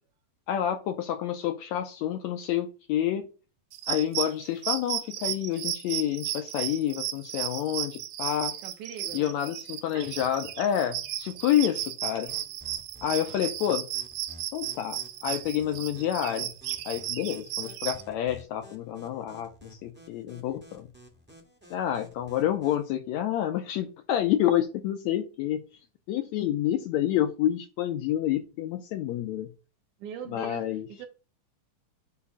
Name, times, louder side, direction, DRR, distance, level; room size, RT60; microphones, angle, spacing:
voice 1, 0.5-3.3 3.9-8.6 9.1-12.3 13.0-13.9 14.5-16.5 16.9-20.9 21.7-25.6 26.1-29.5 30.3-30.9, left 11 dB, 80° left, 1.7 m, -28 dB
sound 1, 3.7-18.0, right 13 dB, 85° right, 2.3 m, -34 dB
voice 2, 8.6-9.4 9.9-10.3 30.0-31.1, right 7 dB, 70° right, 2.2 m, -41 dB
sound 2, 12.3-22.9, equal, 10° right, 0.5 m, -53 dB
8.3 x 3.0 x 6.0 m
omnidirectional pair, 3.7 m